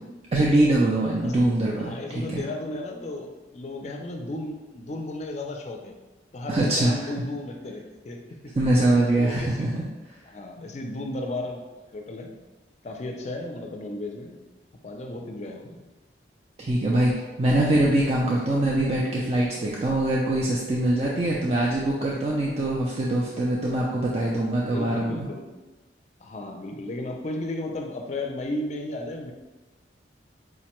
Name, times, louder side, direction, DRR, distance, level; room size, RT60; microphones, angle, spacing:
voice 1, 0.3-2.4 6.5-7.1 8.6-9.8 16.6-17.1 17.4-25.3, right 1 dB, 35° right, -4 dB, 0.3 m, -23 dB
voice 2, 1.8-5.9 6.3-8.2 9.1-9.7 10.3-12.3 12.8-14.4 14.8-15.8 24.5-25.5 26.2-29.3, left 1 dB, 40° left, 3 dB, 0.4 m, -34 dB
4.7 x 2.1 x 3.0 m, 1.2 s
head